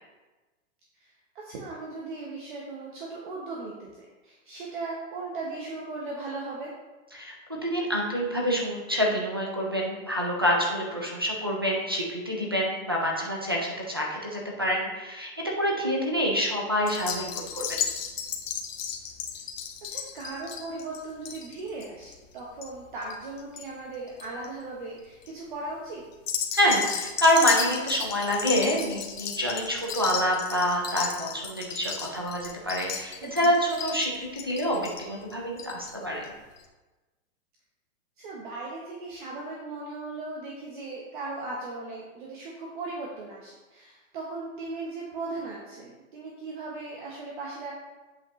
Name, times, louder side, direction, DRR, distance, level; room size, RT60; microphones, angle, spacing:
voice 1, 1.0-6.7 19.9-26.0 33.2-33.6 38.2-47.7, right 3 dB, 40° right, -3 dB, 1.0 m, -38 dB
voice 2, 7.6-17.3 17.5-17.8 26.5-36.3, equal, 20° right, -2 dB, 0.3 m, -27 dB
sound 1, 16.9-23.6 23.9-24.5 25.0-25.3 26.1-35.9 36.2-36.3 36.6-36.7, left 7 dB, 70° left, 1.2 m, -34 dB
8.2 x 5.4 x 3.1 m, 1.2 s
hypercardioid pair, 170°, 40 cm